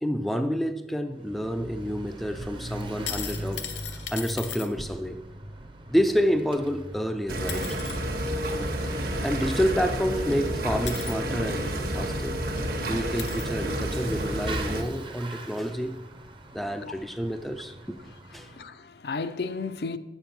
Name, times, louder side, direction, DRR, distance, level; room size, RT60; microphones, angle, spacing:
voice 1, 0.0-5.2 5.9-7.8 9.2-12.4 12.8-16.0 16.5-18.0 18.3-18.5, equal, ahead, 0.4 m, -29 dB
Bicycle / Mechanisms, 1.1-18.7, right 1 dB, 30° right, 0.8 m, -42 dB
sound 1, 2.8-4.7 6.9-7.0 7.5-8.0 9.8-9.9 10.9-11.1 12.1-12.2 12.6-12.7 13.2-13.5 14.3-14.4, left 9 dB, 85° left, 1.0 m, -37 dB
sound 2, 7.3-14.8, right 1 dB, 55° right, 1.2 m, -30 dB
voice 2, 18.3-20.0, left 4 dB, 65° left, 0.5 m, -34 dB
9.3 x 7.1 x 5.8 m
head